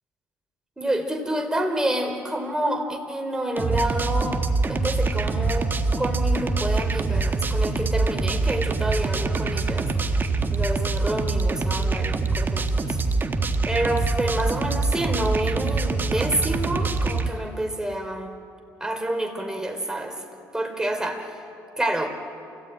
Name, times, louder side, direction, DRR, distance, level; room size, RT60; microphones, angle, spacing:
voice 1, 0.8-4.4 4.7-5.7 6.0-10.2 10.5-13.0 13.6-18.3 18.8-20.2 20.5-21.4 21.8-22.1, right 1 dB, 10° right, 5 dB, 3.5 m, -28 dB
sound 1, 3.6-17.3, right 3 dB, 30° right, 1.8 m, -24 dB
27.5 x 16.5 x 9.0 m, 2.6 s
supercardioid pair, 80°, 7 cm